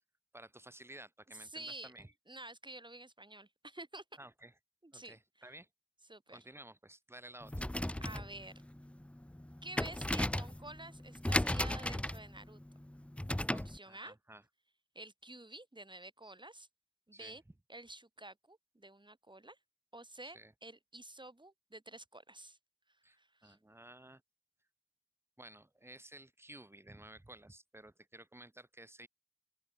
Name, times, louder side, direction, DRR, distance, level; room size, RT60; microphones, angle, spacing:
voice 1, 0.3-2.1 4.2-4.5 4.9-5.7 6.3-7.7 13.5-14.4 17.1-17.4 20.2-20.5 23.0-24.2 25.4-29.1, right 1 dB, 15° right, 0.8 m, -54 dB
voice 2, 1.4-1.9 2.3-4.0 4.8-5.2 6.1-6.4 8.0-8.5 9.6-12.6 13.5-14.2 14.9-16.7 17.1-17.4 17.7-19.6 19.9-22.6 23.1-23.6, right 2 dB, 35° right, 2.4 m, -50 dB
sound 1, 7.4-13.8, left 1 dB, 10° left, 0.4 m, -36 dB
open air
wide cardioid pair, 45°, 14 cm